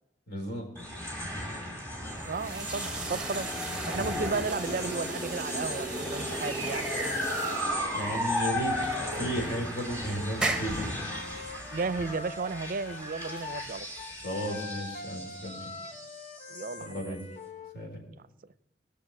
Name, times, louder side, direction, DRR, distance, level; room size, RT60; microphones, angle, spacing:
voice 1, 0.3-0.7 7.9-8.8 9.1-10.9 14.2-15.7 16.8-17.2 17.7-18.0, right 1 dB, 75° left, 0 dB, 4.5 m, -34 dB
sound 1, 0.8-17.2, left 1 dB, 10° left, 3.0 m, -35 dB
sound 2, 2.0-14.5, right 1 dB, 5° right, 0.9 m, -38 dB
voice 2, 2.3-3.5 3.9-7.2 11.7-13.9 16.5-17.2, right 4 dB, 50° right, 15 dB, 0.5 m, -34 dB
Wind instrument woodwind instrument, 10.1-13.7 14.0-17.8, left 4 dB, 40° left, 0.9 m, -44 dB
18.5 x 6.7 x 6.5 m, 0.92 s
head